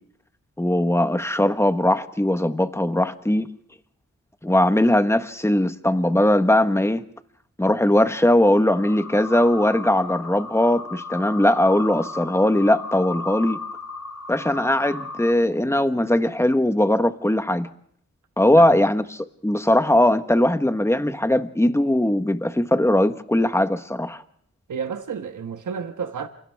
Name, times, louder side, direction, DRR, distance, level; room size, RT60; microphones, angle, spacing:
voice 1, 0.6-3.5 4.4-7.0 7.6-13.6 14.3-17.7 18.4-24.2, left 1 dB, 10° left, 1.3 m, -20 dB
sound 1, 8.7-15.3, left 3 dB, 65° left, 1.5 m, -35 dB
voice 2, 18.4-18.8 24.7-26.3, right 6 dB, 90° right, 1.3 m, -31 dB
28.5 x 27.0 x 3.6 m
wide cardioid pair, 85°, 30 cm